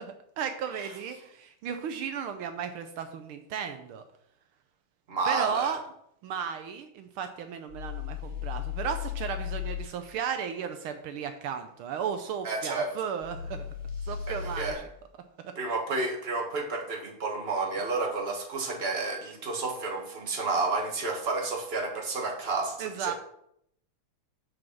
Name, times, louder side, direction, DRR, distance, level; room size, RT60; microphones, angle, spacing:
voice 1, 0.0-4.0 5.2-5.8 6.2-13.7 14.1-14.8 22.8-23.1, right 7 dB, 75° right, 8 dB, 1.6 m, -34 dB
voice 2, 5.1-5.7 12.4-12.9 14.3-14.8 15.5-23.1, right 3 dB, 30° right, 2 dB, 1.7 m, -31 dB
sound 1, 7.7-9.8 13.2-14.7, left 9 dB, 15° right, 0.9 m, -35 dB
7.7 x 6.3 x 6.0 m, 0.72 s
omnidirectional pair, 2.4 m